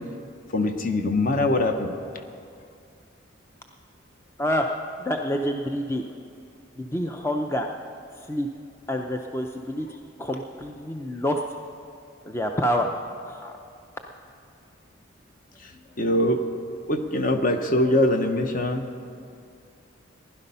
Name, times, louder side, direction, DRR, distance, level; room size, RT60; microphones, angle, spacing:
voice 1, 0.5-1.9 15.6-15.7 16.0-16.4 16.9-18.8, left 1 dB, 45° left, 6 dB, 0.9 m, -22 dB
voice 2, 4.4-4.7 5.0-6.0 6.8-7.7 8.3-8.5 8.9-11.4 12.2-12.9 13.3-13.5, equal, 15° left, 3 dB, 0.5 m, -27 dB
16.0 x 11.0 x 5.5 m, 2.4 s
head